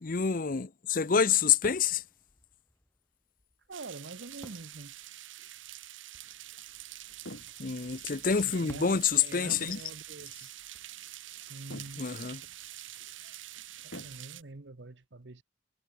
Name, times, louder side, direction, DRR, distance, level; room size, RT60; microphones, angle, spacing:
voice 1, 0.0-2.0 7.6-9.8 12.0-12.4, left 6 dB, 45° left, 0.6 m, -27 dB
sound 1, 1.6-12.1, equal, 10° left, 5.6 m, -58 dB
voice 2, 3.7-4.9 8.4-10.5 11.5-12.1 13.8-15.4, right 3 dB, 65° right, 1.0 m, -45 dB
sound 2, 3.7-14.4, right 14 dB, 85° right, 1.3 m, -46 dB
sound 3, 6.2-14.2, left 1 dB, 70° left, 7.3 m, -51 dB
head